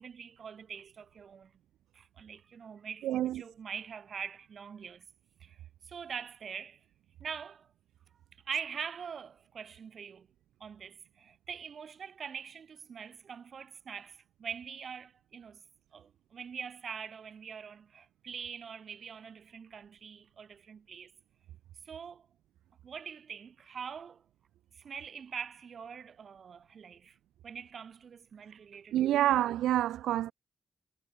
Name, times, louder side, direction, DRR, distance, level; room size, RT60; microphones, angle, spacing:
voice 1, 0.0-1.5 1.9-5.1 5.4-5.6 5.8-6.8 7.2-7.7 8.5-10.3 10.6-15.6 15.9-21.1 21.9-22.3 22.8-24.2 24.7-27.2 27.4-29.1, right 7 dB, 70° right, 5.3 m, -43 dB
voice 2, 3.0-3.4 28.9-30.3, right 13 dB, 90° right, 0.4 m, -27 dB
supercardioid pair, 40°, 0 cm